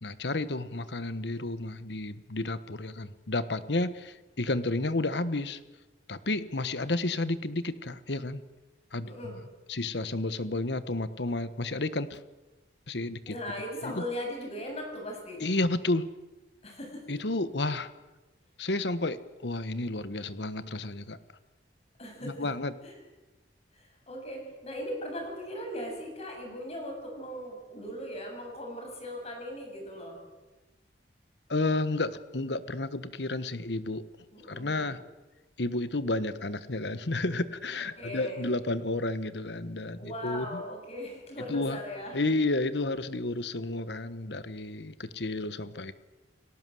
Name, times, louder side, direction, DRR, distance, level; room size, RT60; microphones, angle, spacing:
voice 1, 0.0-5.6 6.1-8.4 8.9-9.3 9.7-12.2 12.9-13.4 13.8-14.0 15.4-16.1 17.1-17.9 18.6-21.2 22.2-22.7 31.5-34.0 34.5-35.0 35.6-40.6 41.5-41.8 42.1-45.9, left 2 dB, 65° left, 14 dB, 1.3 m, -31 dB
voice 2, 9.0-9.4 13.3-15.4 16.6-17.0 22.0-22.5 22.8-23.0 23.7-30.2 34.3-35.0 38.0-38.5 40.0-42.1, equal, 35° left, 2 dB, 7.5 m, -39 dB
29.0 x 18.0 x 7.8 m, 1.2 s
head